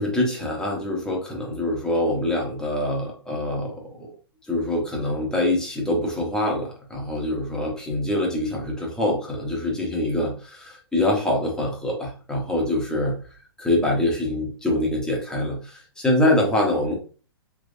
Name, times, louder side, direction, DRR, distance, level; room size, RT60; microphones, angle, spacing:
voice 1, 0.0-4.1 4.5-13.2 13.6-16.9, left 1 dB, 5° left, -2 dB, 1.0 m, -24 dB
3.5 x 3.0 x 2.6 m, 0.38 s
hypercardioid pair, 130°, 14 cm